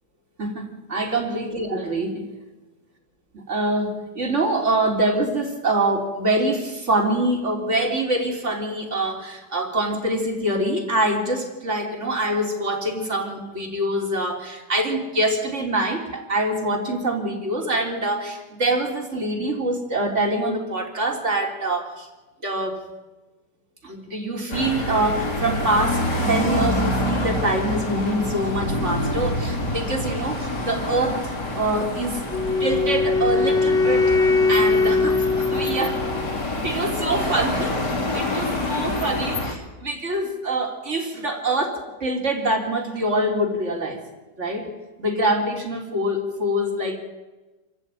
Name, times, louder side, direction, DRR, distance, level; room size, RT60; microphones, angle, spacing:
voice 1, 0.4-2.2 3.3-22.1 22.4-22.9 23.8-32.2 32.6-34.2 34.5-36.0 36.6-37.7 38.1-44.0 44.4-44.7 45.0-47.0, right 1 dB, 40° right, 2 dB, 3.9 m, -25 dB
sound 1, 24.5-39.5, left 1 dB, 70° left, 4.0 m, -27 dB
Wind instrument woodwind instrument, 32.3-36.4, left 3 dB, ahead, 1.5 m, -21 dB
27.5 x 14.0 x 9.1 m, 1.2 s
omnidirectional pair, 1.9 m